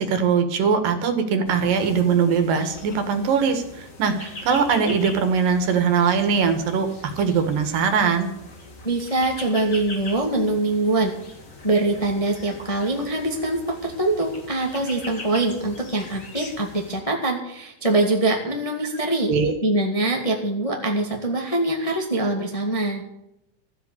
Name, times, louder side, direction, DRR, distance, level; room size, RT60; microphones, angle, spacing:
voice 1, 0.0-8.3 19.3-19.5, right 6 dB, 80° right, 7 dB, 3.3 m, -21 dB
sound 1, 1.4-17.0, left 2 dB, 30° left, 1.8 m, -41 dB
voice 2, 8.8-11.1 11.6-19.3 19.6-23.0, right 2 dB, 15° left, 1 dB, 1.3 m, -23 dB
14.0 x 8.0 x 8.5 m, 0.83 s
omnidirectional pair, 3.9 m